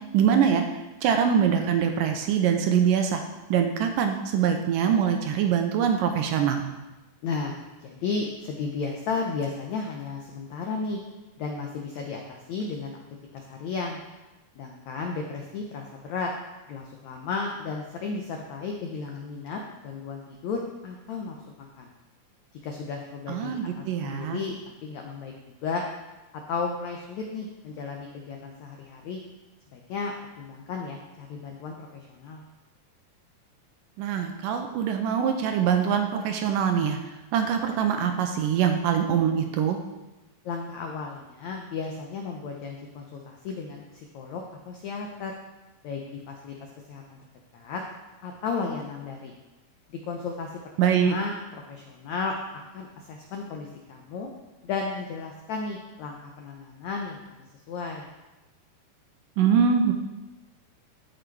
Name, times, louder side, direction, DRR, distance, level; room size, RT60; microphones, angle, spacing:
voice 1, 0.1-3.2 3.5-6.7 23.3-24.4 34.0-37.0 37.3-39.8 50.8-51.1 59.4-59.9, right 7 dB, 80° right, 5 dB, 2.0 m, -23 dB
voice 2, 7.2-11.0 11.4-13.0 13.3-14.0 14.5-16.3 16.7-21.9 22.6-24.5 24.8-25.3 25.6-25.8 26.5-29.2 29.7-32.4 40.4-45.3 45.8-47.2 47.5-47.8 48.2-49.4 49.9-51.3 51.7-52.3 52.7-54.3 54.6-57.2 57.7-58.1, left 4 dB, 80° left, 1 dB, 1.6 m, -34 dB
14.5 x 5.1 x 4.6 m, 1.1 s
omnidirectional pair, 4.4 m